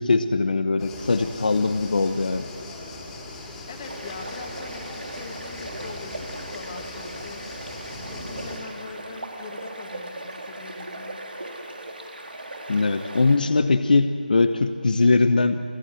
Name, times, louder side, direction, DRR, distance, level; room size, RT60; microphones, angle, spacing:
voice 1, 0.0-2.5 12.7-15.6, left 3 dB, 60° left, 9 dB, 1.0 m, -21 dB
sound 1, 0.8-8.6, left 2 dB, 10° left, 2.9 m, -39 dB
voice 2, 3.7-7.5 8.1-11.2, left 5 dB, 30° left, 4 dB, 2.1 m, -42 dB
sound 2, 3.8-13.4, right 1 dB, 85° right, 3.8 m, -38 dB
28.0 x 17.0 x 7.8 m, 2.3 s
figure-of-eight pair, 165°, 5 cm